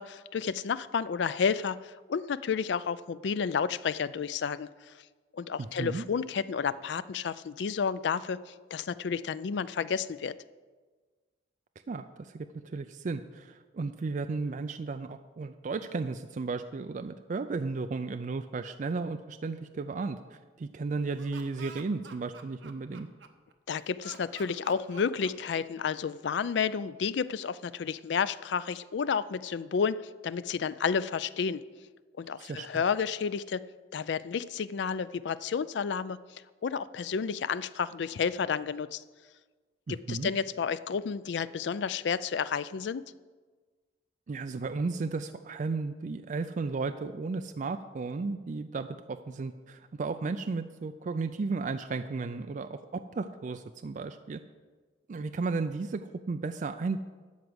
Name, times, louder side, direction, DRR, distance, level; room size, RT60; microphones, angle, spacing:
voice 1, 0.0-4.7 5.3-10.3 23.7-31.6 32.2-33.6 33.9-39.0 39.9-43.0, left 6 dB, 65° left, 16 dB, 0.4 m, -31 dB
voice 2, 5.6-6.1 11.9-23.1 32.4-32.7 39.9-40.3 44.3-54.4 55.1-57.0, right 4 dB, 45° right, 8 dB, 0.4 m, -34 dB
Laughter, 21.0-23.5 24.0-26.0, right 5 dB, 75° right, 0.9 m, -50 dB
12.5 x 4.7 x 8.0 m, 1.4 s
head